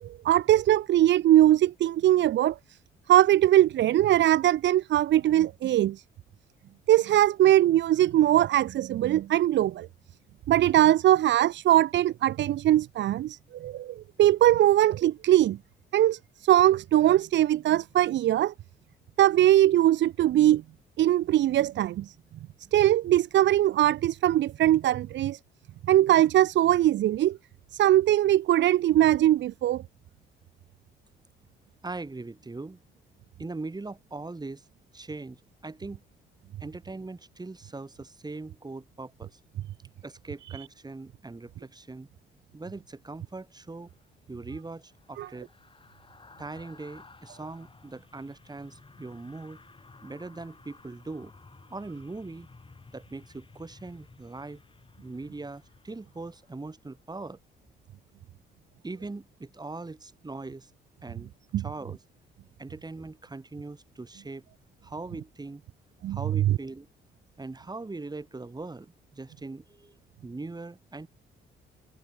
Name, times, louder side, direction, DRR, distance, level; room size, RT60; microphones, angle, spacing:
voice 1, 0.0-2.6 3.1-6.0 6.9-9.9 10.5-15.6 15.9-18.5 19.2-20.6 21.0-22.1 22.7-25.4 25.9-27.4 27.7-29.8 40.4-40.7 45.2-45.3 61.5-61.7 66.0-66.6, right 13 dB, 65° right, 0.6 m, -21 dB
voice 2, 31.8-32.8 33.4-34.7 34.9-36.0 36.6-39.4 40.0-42.1 42.5-43.9 44.3-45.5 46.4-49.6 50.0-51.3 51.7-52.5 52.9-54.6 55.0-57.4 58.8-60.7 61.0-61.3 61.6-62.0 62.6-64.4 64.8-65.6 66.1-66.9 67.4-70.0 70.2-71.1, right 3 dB, 20° right, 4.0 m, -40 dB
sound 1, 43.8-57.1 57.5-57.7, left 3 dB, 25° left, 4.6 m, -55 dB
cardioid pair, 90°, 20 cm